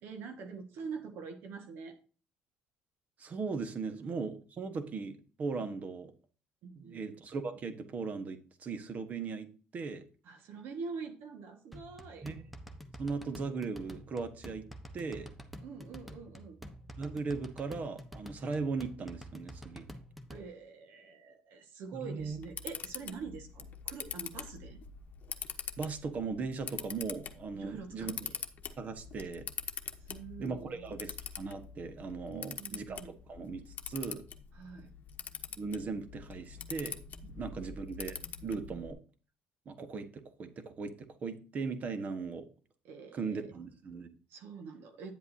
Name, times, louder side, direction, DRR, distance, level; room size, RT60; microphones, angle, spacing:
voice 1, 0.0-2.0 6.6-7.1 10.2-12.3 15.6-16.6 20.3-24.8 27.5-28.3 30.0-31.0 32.3-33.2 34.5-34.9 37.5-37.7 42.8-43.2 44.3-45.2, right 5 dB, 70° right, 5 dB, 1.6 m, -45 dB
voice 2, 3.2-6.1 6.8-10.1 12.2-12.4 13.0-14.6 14.9-15.3 17.0-19.9 22.0-22.4 25.8-28.1 28.8-29.5 30.4-33.0 33.3-34.3 35.6-37.0 37.3-39.0 39.6-42.5 43.1-44.1, right 4 dB, 40° right, 10 dB, 1.3 m, -38 dB
sound 1, 11.7-20.4, equal, ahead, 1.1 m, -48 dB
Camera, 22.2-38.9, left 7 dB, 45° left, 1.1 m, -44 dB
9.4 x 8.0 x 2.8 m, 0.37 s
cardioid pair, 105°, 4 cm